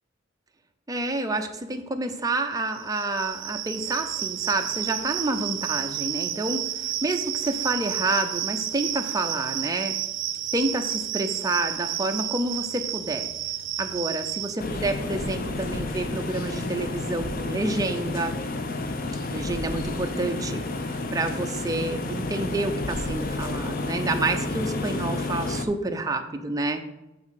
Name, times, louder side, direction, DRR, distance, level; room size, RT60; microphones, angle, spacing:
voice 1, 0.9-9.9 10.5-13.3 13.8-18.4 19.3-26.9, right 2 dB, 20° right, 5 dB, 0.6 m, -29 dB
sound 1, 2.6-14.6, right 12 dB, 75° right, 0.6 m, -31 dB
sound 2, 14.6-25.7, left 2 dB, 50° left, 0.6 m, -30 dB
8.6 x 3.5 x 5.8 m, 0.99 s
head